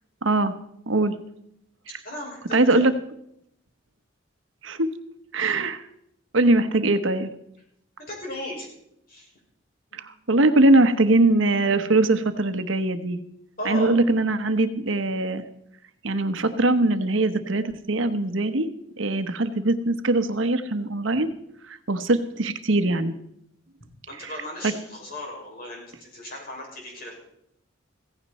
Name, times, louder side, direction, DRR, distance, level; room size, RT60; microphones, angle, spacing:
voice 1, 0.2-0.5 0.9-1.1 2.5-2.9 4.6-4.9 5.3-5.8 6.3-7.3 9.9-13.2 13.6-15.4 16.0-18.7 19.0-21.3 21.7-23.1, right 2 dB, 75° right, 10 dB, 1.0 m, -21 dB
voice 2, 2.0-2.8 8.0-8.7 9.1-9.3 9.9-10.0 13.6-13.9 24.1-27.2, left 1 dB, 45° left, -1 dB, 5.9 m, -36 dB
16.0 x 15.5 x 4.2 m, 0.77 s
head